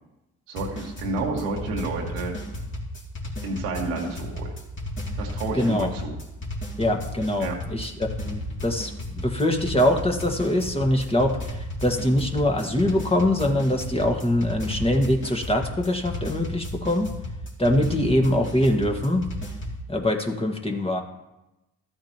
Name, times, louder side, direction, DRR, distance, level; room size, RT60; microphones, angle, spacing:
voice 1, 0.5-2.3 3.4-4.5 5.2-6.2 7.4-7.6, right 3 dB, 90° right, -1 dB, 1.7 m, -30 dB
sound 1, 0.6-19.8, left 1 dB, 35° left, 2.6 m, -33 dB
voice 2, 5.5-5.9 6.8-17.1 17.6-19.3 19.9-21.0, left 1 dB, 15° left, 2 dB, 1.7 m, -23 dB
13.5 x 8.7 x 3.0 m, 0.95 s
hypercardioid pair, 50°, 36 cm